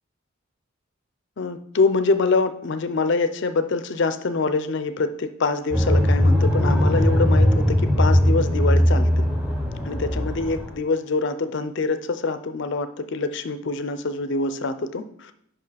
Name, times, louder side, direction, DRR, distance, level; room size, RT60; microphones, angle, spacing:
voice 1, 1.4-9.3 9.8-15.3, left 3 dB, 55° left, 11 dB, 0.5 m, -25 dB
sound 1, 5.7-10.7, equal, 5° right, 0.8 m, -19 dB
5.5 x 5.3 x 4.1 m, 0.70 s
head